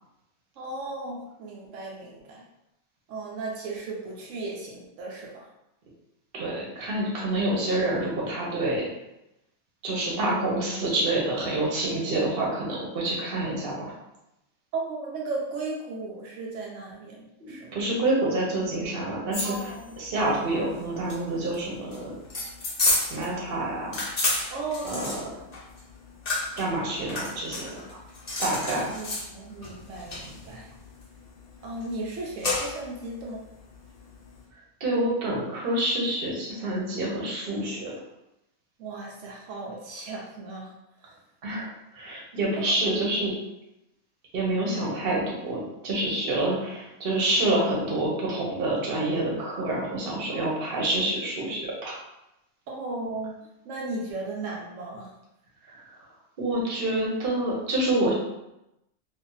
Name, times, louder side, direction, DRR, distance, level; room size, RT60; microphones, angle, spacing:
voice 1, 0.6-2.4 3.1-5.5 12.4-12.5 14.7-17.7 19.4-19.9 24.5-25.2 28.7-30.7 31.6-33.4 38.8-40.7 41.0-41.2 42.6-42.7 50.3-50.7 52.7-53.4 53.6-55.1, right 3 dB, 80° right, -2 dB, 1.0 m, -36 dB
voice 2, 6.3-8.9 9.8-13.9 17.4-19.7 20.0-22.2 23.1-24.1 24.8-25.4 26.6-28.0 28.4-28.9 34.8-38.0 41.4-43.3 44.3-52.0 55.6-55.8 56.4-58.1, right 1 dB, 50° right, -3 dB, 1.0 m, -27 dB
sound 1, 19.3-34.4, left 2 dB, 40° left, 0.6 m, -32 dB
2.6 x 2.4 x 3.8 m, 0.89 s
omnidirectional pair, 1.3 m